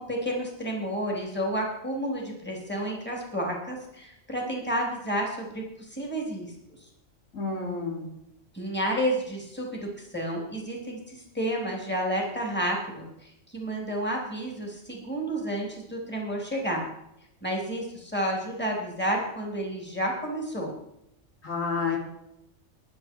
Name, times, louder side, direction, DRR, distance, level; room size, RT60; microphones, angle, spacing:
voice 1, 0.0-6.5 8.5-16.8 17.4-20.7, right 1 dB, 10° left, 0 dB, 3.6 m, -31 dB
voice 2, 7.3-8.1 21.4-22.0, left 4 dB, 75° left, -1 dB, 3.7 m, -29 dB
14.5 x 11.0 x 4.7 m, 0.81 s
omnidirectional pair, 1.4 m